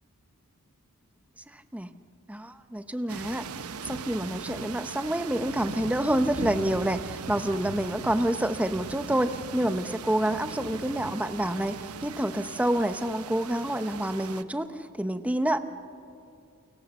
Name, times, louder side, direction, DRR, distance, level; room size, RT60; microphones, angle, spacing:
voice 1, 1.5-1.9 2.3-3.5 3.8-15.6, right 1 dB, 5° right, 10 dB, 0.8 m, -28 dB
sound 1, 3.1-14.4, right 4 dB, 75° right, 0.9 m, -39 dB
29.5 x 28.5 x 7.1 m, 2.5 s
head